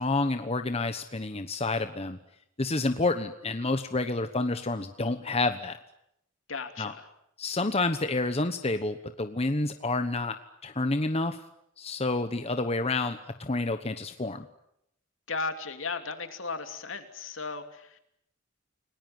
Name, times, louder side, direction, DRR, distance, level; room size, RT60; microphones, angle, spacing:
voice 1, 0.0-2.2 2.6-5.8 6.8-6.9 7.4-10.3 10.6-11.4 11.8-14.5, left 2 dB, 30° left, 8 dB, 1.1 m, -29 dB
voice 2, 6.5-7.1 15.3-18.0, left 4 dB, 65° left, 7 dB, 2.9 m, -35 dB
29.5 x 19.5 x 9.3 m, 0.78 s
head